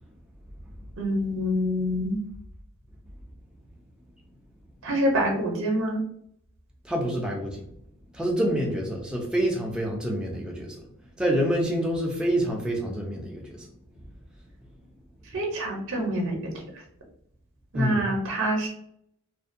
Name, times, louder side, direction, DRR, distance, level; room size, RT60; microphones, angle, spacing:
voice 1, 1.0-2.2 4.8-6.0 15.3-16.6 17.7-18.7, equal, 60° right, 0 dB, 0.5 m, -26 dB
voice 2, 6.8-7.7 8.1-10.8 11.2-13.7 17.7-18.1, equal, 5° right, -1 dB, 0.4 m, -27 dB
2.5 x 2.1 x 2.5 m, 0.70 s
head